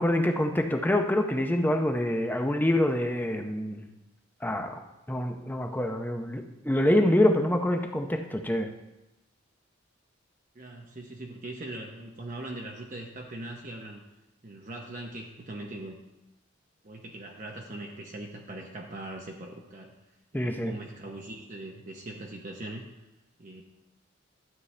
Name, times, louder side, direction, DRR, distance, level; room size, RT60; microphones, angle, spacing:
voice 1, 0.0-3.9 4.4-4.8 5.1-8.7 20.3-20.8, left 1 dB, 10° left, 4 dB, 0.6 m, -26 dB
voice 2, 10.5-14.0 14.4-16.0 16.8-19.9 20.4-22.9 23.4-23.6, right 1 dB, 40° right, 0 dB, 0.8 m, -41 dB
12.5 x 8.2 x 3.3 m, 0.95 s
head